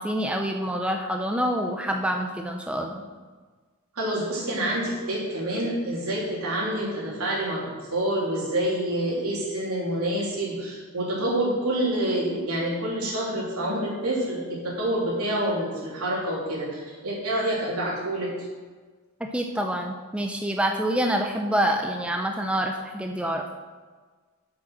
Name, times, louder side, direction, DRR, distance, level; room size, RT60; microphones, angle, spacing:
voice 1, 0.0-3.0 19.2-23.5, equal, 5° right, 3 dB, 0.6 m, -27 dB
voice 2, 3.9-18.5, right 1 dB, 85° right, -4 dB, 3.3 m, -27 dB
7.9 x 7.7 x 6.1 m, 1.4 s
head